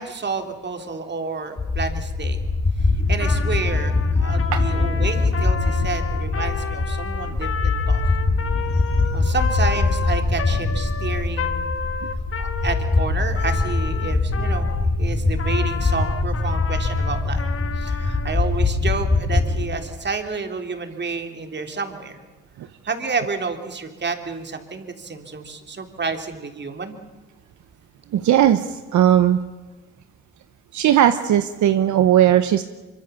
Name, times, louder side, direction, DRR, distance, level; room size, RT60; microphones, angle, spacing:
voice 1, 0.0-2.4 2.8-8.0 9.1-11.6 12.4-14.7 15.0-17.4 17.7-22.2 22.9-27.0, right 4 dB, 35° right, 6 dB, 3.3 m, -30 dB
sound 1, 1.6-19.7, left 3 dB, 25° left, 4.0 m, -22 dB
Trumpet, 3.2-14.9 15.4-18.4, left 6 dB, 45° left, 2.0 m, -32 dB
voice 2, 28.1-29.4 30.7-32.6, right 11 dB, 70° right, 10 dB, 1.1 m, -17 dB
24.5 x 24.0 x 7.0 m, 1.3 s
cardioid pair, 90°, 30 cm